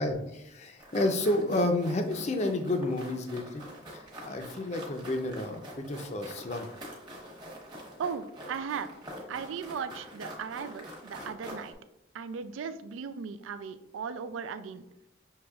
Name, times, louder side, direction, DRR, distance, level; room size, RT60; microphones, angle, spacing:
voice 1, 0.0-3.6 3.9-6.7, left 1 dB, 35° left, 6 dB, 0.5 m, -30 dB
sound 1, 0.8-11.7, equal, 25° right, 1.1 m, -45 dB
voice 2, 8.0-8.9 9.3-11.7 12.1-14.8, right 6 dB, 90° right, 12 dB, 0.3 m, -37 dB
6.4 x 3.0 x 2.3 m, 0.87 s
head